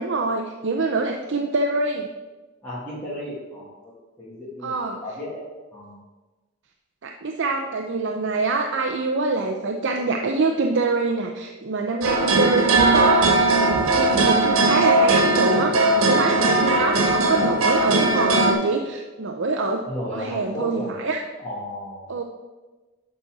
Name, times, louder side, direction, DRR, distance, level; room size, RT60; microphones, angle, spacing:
voice 1, 0.0-2.1 4.6-5.0 7.0-13.4 13.6-19.8 20.1-21.2 22.1-22.2, right 3 dB, 60° right, 3 dB, 0.7 m, -25 dB
voice 2, 2.6-5.4 5.7-6.0 19.9-20.9 21.4-22.1, left 1 dB, 10° left, -9 dB, 2.1 m, -34 dB
sound 1, 12.0-18.5, right 2 dB, 90° right, 1.5 m, -19 dB
11.0 x 4.2 x 6.1 m, 1.2 s
head